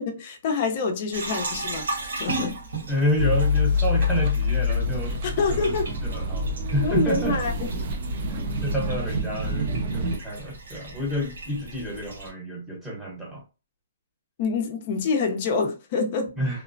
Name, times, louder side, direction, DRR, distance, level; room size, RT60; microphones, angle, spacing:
voice 1, 0.0-1.9 2.2-2.6 5.0-5.9 6.8-7.9 14.4-16.3, left 4 dB, 30° left, 0.5 m, -26 dB
sound 1, 1.1-12.3, right 2 dB, 70° right, 1.4 m, -37 dB
voice 2, 2.9-5.1 5.5-5.8 6.0-7.4 8.3-9.7 9.9-13.4 16.4-16.6, equal, 5° right, 0.9 m, -29 dB
sound 2, 3.2-10.2, left 3 dB, 35° right, 0.4 m, -26 dB
3.0 x 2.0 x 2.5 m
hypercardioid pair, 170°, 0 cm